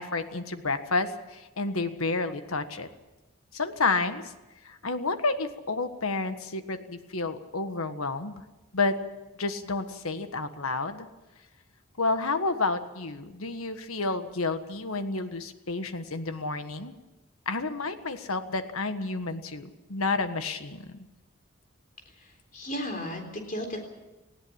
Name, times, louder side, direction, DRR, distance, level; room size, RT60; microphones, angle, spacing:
voice 1, 0.0-2.9 3.5-4.3 4.6-8.4 8.7-9.0 9.4-11.1 12.0-16.9 17.4-21.1, left 3 dB, 85° left, 9 dB, 1.5 m, -30 dB
voice 2, 22.2-23.8, equal, 40° left, 4 dB, 3.7 m, -35 dB
19.5 x 16.0 x 8.8 m, 1.1 s
head